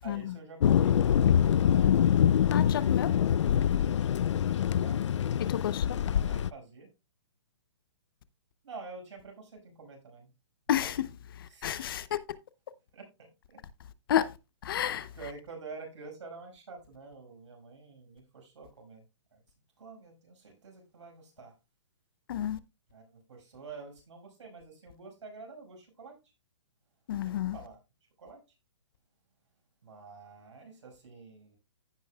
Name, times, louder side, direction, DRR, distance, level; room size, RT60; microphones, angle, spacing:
voice 1, 0.0-1.0 1.7-2.3 4.2-5.3 6.1-6.9 8.6-10.3 10.7-10.9 11.5-11.7 12.9-13.6 15.1-19.1 19.3-19.4 19.8-21.5 22.9-26.3 27.2-27.8 28.2-28.6 29.8-31.6, right 4 dB, 75° right, 5.4 m, -48 dB
Thunder, 0.6-6.5, left 9 dB, 75° left, 0.4 m, -25 dB
voice 2, 2.5-3.1 5.4-6.0 10.7-11.1 11.4-12.2 14.1-14.4 14.6-15.1 22.3-22.6 27.1-27.6, left 11 dB, 50° left, 0.7 m, -31 dB
15.5 x 5.4 x 2.3 m
hypercardioid pair, 155°, 15 cm